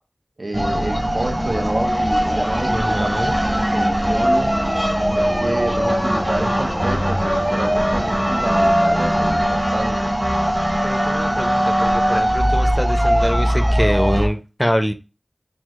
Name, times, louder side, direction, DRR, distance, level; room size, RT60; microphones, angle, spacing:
voice 1, 0.4-4.5 5.1-10.1, right 2 dB, 75° right, 0.6 m, -28 dB
sound 1, 0.5-14.3, equal, 20° right, 0.9 m, -20 dB
voice 2, 2.7-3.4 10.8-14.9, equal, ahead, 0.6 m, -24 dB
4.7 x 2.0 x 3.7 m
wide cardioid pair, 45°, 0 cm